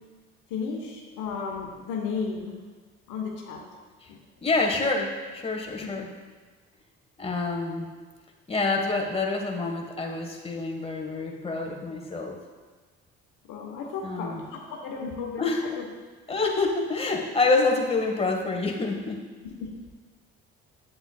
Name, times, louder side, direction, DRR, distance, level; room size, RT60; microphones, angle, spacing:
voice 1, 0.5-2.6 3.1-3.6 4.1-4.2 5.8-5.9 13.5-15.4 15.8-15.9 16.3-16.4 19.4-19.7, left 5 dB, 75° left, 1 dB, 1.0 m, -34 dB
voice 2, 4.4-6.1 7.2-7.9 8.5-12.4 14.0-14.4 15.4-15.8 16.3-19.2, left 3 dB, 20° left, 1 dB, 1.2 m, -27 dB
8.2 x 7.8 x 2.2 m, 1.4 s
supercardioid pair, 60°, 31 cm